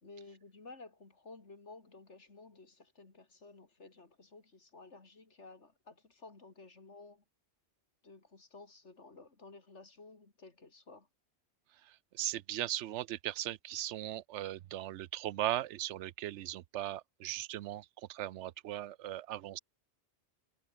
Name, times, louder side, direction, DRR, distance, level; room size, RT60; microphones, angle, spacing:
voice 1, 0.0-7.2 8.0-11.1, left 3 dB, 85° left, 3.3 m, -54 dB
voice 2, 11.8-19.6, right 13 dB, 85° right, 0.9 m, -38 dB
omnidirectional pair, 1.2 m